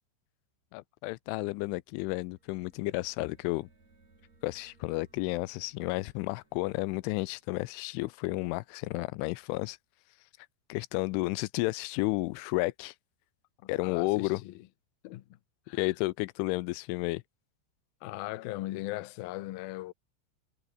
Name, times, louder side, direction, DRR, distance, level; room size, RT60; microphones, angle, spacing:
voice 1, 0.7-3.7 4.4-9.8 10.7-12.9 13.7-14.4 15.7-17.2, left 22 dB, 90° left, 3.1 m, -32 dB
sound 1, 2.0-8.7, right 3 dB, 35° right, 7.6 m, -66 dB
voice 2, 13.8-14.7 15.0-15.4 15.7-15.9 18.0-19.9, left 17 dB, 75° left, 2.3 m, -39 dB
omnidirectional pair, 5.4 m